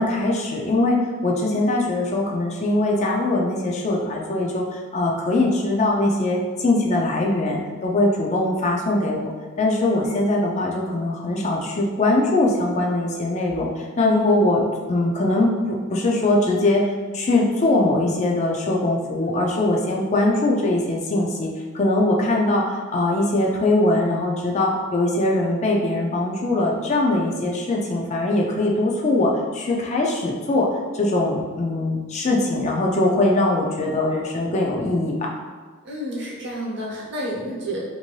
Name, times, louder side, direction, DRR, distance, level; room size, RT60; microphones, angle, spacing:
voice 1, 0.0-9.3 9.6-14.6 14.9-30.7 30.9-35.3, left 2 dB, 35° left, -2 dB, 0.4 m, -21 dB
voice 2, 35.8-37.8, equal, 55° right, -4 dB, 0.8 m, -30 dB
2.6 x 2.6 x 3.1 m, 1.5 s
head